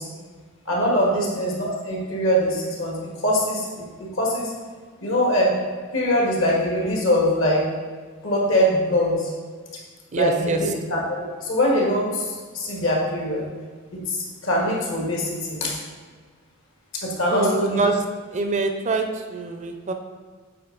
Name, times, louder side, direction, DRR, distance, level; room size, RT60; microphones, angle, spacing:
voice 1, 0.6-3.9 4.1-4.5 5.0-5.5 5.9-7.6 8.2-9.3 10.1-13.4 13.9-15.8 16.9-17.8, equal, 65° left, -3 dB, 1.6 m, -23 dB
voice 2, 10.1-10.7 17.3-18.0 18.3-19.9, right 3 dB, 35° right, 5 dB, 0.5 m, -25 dB
8.8 x 3.9 x 3.9 m, 1.5 s
head